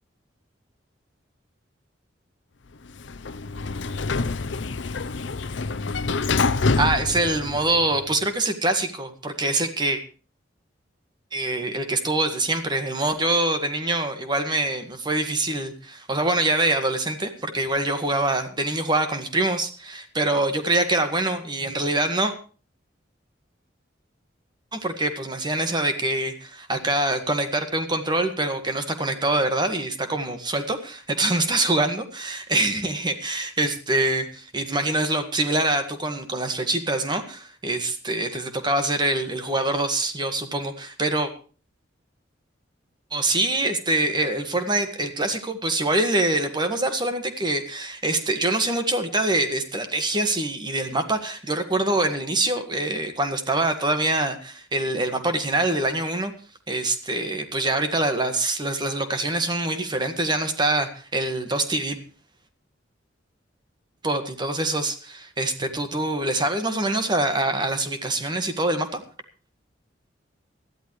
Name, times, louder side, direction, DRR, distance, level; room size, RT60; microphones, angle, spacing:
Sliding door, 2.9-8.1, left 3 dB, 75° left, 0.7 m, -26 dB
voice 1, 6.8-10.0 11.3-22.3 24.7-41.3 43.1-56.3 56.7-62.0 64.0-69.0, right 2 dB, 25° right, 7 dB, 1.7 m, -24 dB
21.0 x 13.5 x 3.2 m, 0.38 s
head